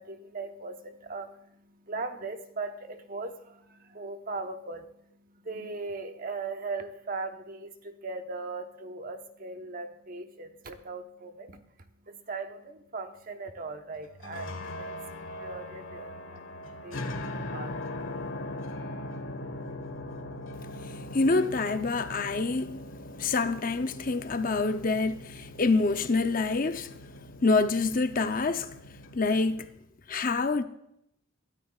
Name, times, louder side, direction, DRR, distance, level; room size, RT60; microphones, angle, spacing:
voice 1, 0.0-16.5 16.7-17.8, right 3 dB, 45° right, 1.1 m, -39 dB
sound 1, 14.1-29.7, left 1 dB, 85° left, 1.5 m, -40 dB
voice 2, 20.8-22.8 23.2-26.9 27.4-28.7 29.1-29.7 30.1-30.6, left 3 dB, 45° left, 0.7 m, -26 dB
22.5 x 13.0 x 2.4 m
head